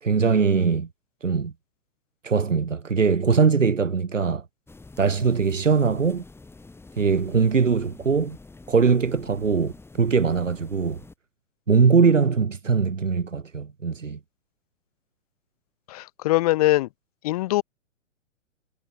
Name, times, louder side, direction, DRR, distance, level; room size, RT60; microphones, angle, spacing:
voice 1, 0.0-0.9 1.2-1.5 2.2-4.4 5.0-6.2 7.0-8.4 8.7-11.0 11.7-14.2, right 5 dB, 85° right, 1.6 m, -21 dB
sound 1, 4.7-11.1, left 3 dB, 5° left, 6.2 m, -47 dB
voice 2, 15.9-16.9 17.2-17.6, left 17 dB, 30° left, 0.5 m, -22 dB
figure-of-eight pair, 115°, 37 cm